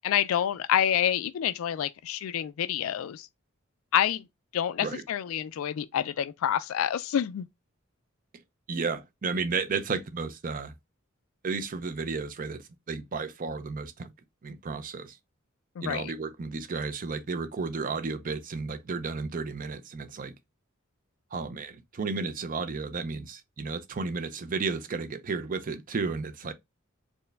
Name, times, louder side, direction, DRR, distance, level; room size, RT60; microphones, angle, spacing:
voice 1, 0.0-3.3 3.9-4.3 4.5-7.5 15.8-16.1, left 10 dB, 75° left, 0.3 m, -28 dB
voice 2, 8.7-10.7 11.4-14.1 14.4-15.2 15.8-20.4 21.3-26.5, right 4 dB, 40° right, 0.5 m, -33 dB
4.4 x 2.2 x 3.3 m
head